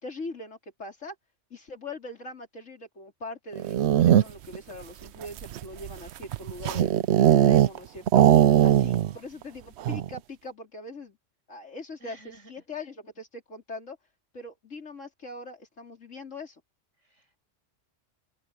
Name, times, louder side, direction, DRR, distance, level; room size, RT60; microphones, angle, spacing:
voice 1, 0.0-1.2 1.5-6.9 7.4-8.3 8.6-11.2 11.5-12.2 12.5-14.0 14.3-16.6, left 2 dB, 85° left, 4.0 m, -41 dB
sound 1, 3.5-4.6 5.2-7.8 8.1-9.2 9.4-9.5 9.8-10.2, right 11 dB, 70° right, 0.8 m, -20 dB
voice 2, 12.0-12.5 17.0-17.4, right 1 dB, 85° right, 7.9 m, -52 dB
omnidirectional pair, 1.3 m